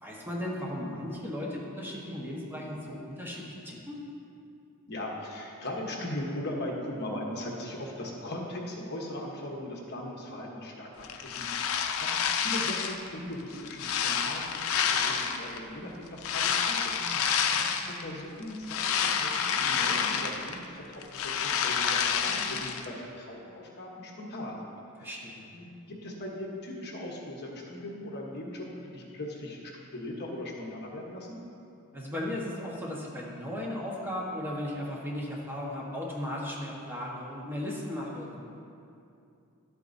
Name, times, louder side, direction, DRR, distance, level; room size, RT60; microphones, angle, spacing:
voice 1, 0.0-4.0 17.0-17.7 25.0-25.4 31.9-38.4, left 1 dB, 10° right, -4 dB, 1.2 m, -36 dB
voice 2, 4.9-17.0 17.9-24.6 25.0-25.1 25.5-31.3, left 1 dB, 50° left, -1 dB, 1.1 m, -39 dB
sound 1, 11.0-13.1 13.5-15.6 16.2-18.0 18.4-20.7 20.9-22.9, left 7 dB, 65° left, 0.5 m, -29 dB
11.5 x 8.3 x 2.7 m, 2.6 s
head